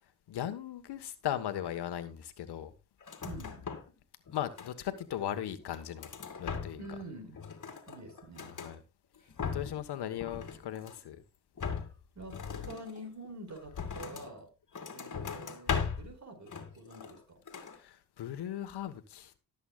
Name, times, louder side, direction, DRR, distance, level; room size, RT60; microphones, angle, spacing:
voice 1, 0.3-2.7 4.3-6.1 6.4-6.8 8.4-8.8 9.5-11.2 17.8-19.4, left 11 dB, 70° left, 1.3 m, -38 dB
sound 1, 3.0-4.0 4.3-5.0 5.5-7.0 7.3-8.7 9.2-9.9 10.2-11.1 11.6-14.3 14.7-16.1 16.5-17.2 17.5-17.8, left 6 dB, 45° left, 2.3 m, -39 dB
voice 2, 3.2-3.7 6.8-7.4 7.9-8.6 12.1-14.5 14.9-17.4, right 2 dB, 45° right, 4.9 m, -47 dB
18.5 x 8.1 x 2.4 m
supercardioid pair, 60°, 41 cm